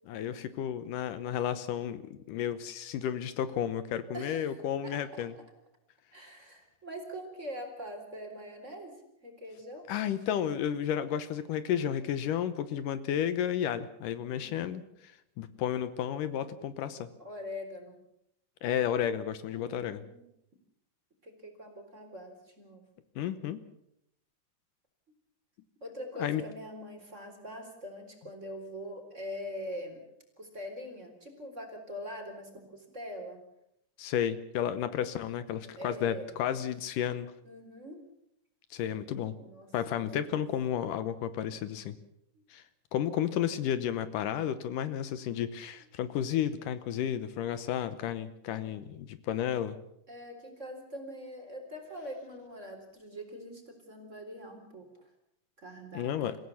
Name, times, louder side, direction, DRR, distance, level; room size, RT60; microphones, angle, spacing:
voice 1, 0.1-5.3 9.9-15.1 15.4-17.1 18.6-20.0 23.2-23.6 26.2-26.4 34.0-37.3 38.7-39.3 39.7-42.0 42.5-42.6 42.9-49.8 55.9-56.4, left 10 dB, 75° left, 13 dB, 2.5 m, -32 dB
voice 2, 4.1-5.3 6.1-9.0 9.2-9.9 14.3-14.9 17.2-18.0 19.5-20.2 21.2-22.8 25.8-30.0 30.4-33.4 35.8-36.3 37.4-38.0 39.3-40.1 42.3-42.4 50.1-54.9 55.6-56.3, equal, 20° right, 4 dB, 3.9 m, -43 dB
27.0 x 16.0 x 7.0 m, 0.77 s
omnidirectional pair, 3.9 m